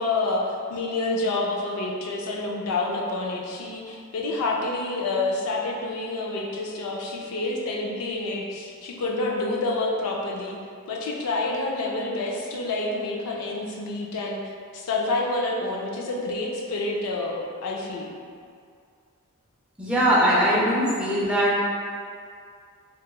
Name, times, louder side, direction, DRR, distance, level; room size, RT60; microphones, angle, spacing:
voice 1, 0.0-10.6 10.9-14.4 14.7-18.1, left 2 dB, 75° left, -1 dB, 0.4 m, -28 dB
voice 2, 19.8-21.6, equal, 5° right, -8 dB, 0.4 m, -21 dB
2.8 x 2.3 x 2.2 m, 2.2 s
head